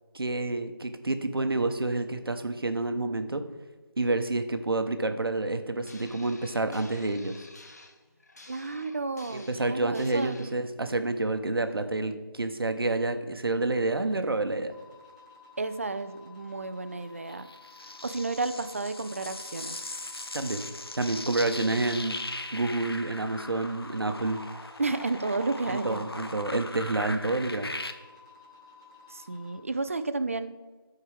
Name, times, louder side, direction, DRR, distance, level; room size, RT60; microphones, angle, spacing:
voice 1, 0.1-3.4 4.0-7.5 9.3-14.7 20.3-20.6 20.9-22.2 22.5-24.4 25.7-27.7, right 2 dB, 75° right, 8 dB, 0.9 m, -29 dB
sound 1, 5.8-10.5, left 2 dB, 45° left, 0.7 m, -51 dB
voice 2, 8.5-10.6 15.6-17.5 18.0-19.9 24.8-26.0 29.1-30.5, right 3 dB, 35° right, 11 dB, 0.4 m, -32 dB
sound 2, 14.7-29.6, left 4 dB, 10° left, 1.0 m, -53 dB
sound 3, 17.3-27.9, left 2 dB, 85° left, 0.8 m, -39 dB
13.5 x 4.6 x 3.4 m, 1.3 s
figure-of-eight pair, 165°, 12 cm